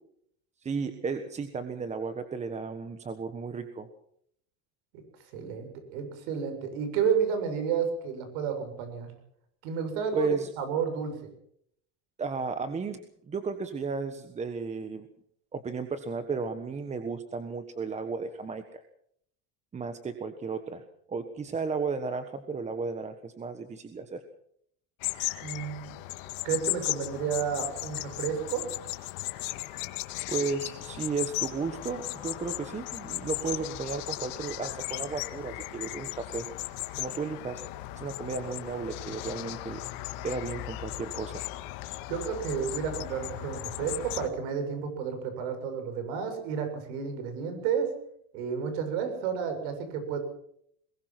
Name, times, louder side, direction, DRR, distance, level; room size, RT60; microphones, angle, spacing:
voice 1, 0.6-3.9 10.1-10.5 12.2-15.1 15.5-18.8 19.7-24.2 30.3-36.5 37.0-37.6 37.9-39.8 40.2-41.4, right 4 dB, 20° right, 9 dB, 1.4 m, -34 dB
voice 2, 5.3-9.1 9.6-11.3 25.4-25.9 26.4-28.7 42.1-47.9 48.3-50.2, right 7 dB, 80° right, 8 dB, 7.3 m, -31 dB
sound 1, 25.0-44.3, left 18 dB, 70° left, 1.8 m, -36 dB
22.0 x 20.0 x 6.0 m, 0.68 s
cardioid pair, 155°, 35 cm